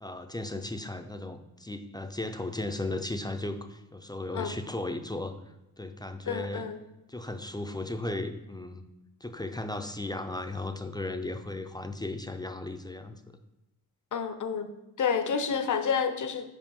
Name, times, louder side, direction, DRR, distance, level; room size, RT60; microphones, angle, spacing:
voice 1, 0.0-5.4 5.8-6.7 7.1-8.8 9.2-13.2, left 2 dB, 10° left, 6 dB, 0.5 m, -36 dB
voice 2, 6.3-6.8 14.1-14.7 15.0-16.5, left 6 dB, 60° left, 9 dB, 0.7 m, -29 dB
5.1 x 4.9 x 5.3 m, 0.97 s
cardioid pair, 80°, 35 cm